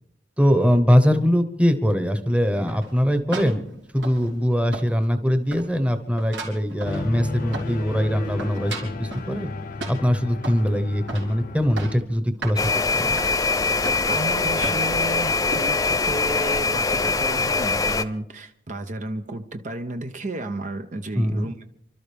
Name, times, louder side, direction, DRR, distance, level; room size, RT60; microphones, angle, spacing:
voice 1, 0.4-3.6 3.9-9.5 9.9-12.6 12.9-13.1 21.1-21.5, equal, 5° right, 9 dB, 1.1 m, -22 dB
sound 1, 2.7-4.5 4.7-5.2 5.5-7.9 8.2-9.3 9.8-10.7 11.1-11.3 11.6-12.1 12.4-12.6 13.2-13.3 13.8-14.3 14.6-14.9 15.5-15.7, right 2 dB, 85° right, 3.8 m, -36 dB
sound 2, 6.8-12.0, left 3 dB, 55° left, 0.7 m, -33 dB
sound 3, 12.6-18.0, left 4 dB, 20° left, 0.6 m, -23 dB
voice 2, 14.1-21.6, right 2 dB, 45° right, 7 dB, 0.7 m, -32 dB
28.5 x 12.5 x 3.5 m, 0.72 s
head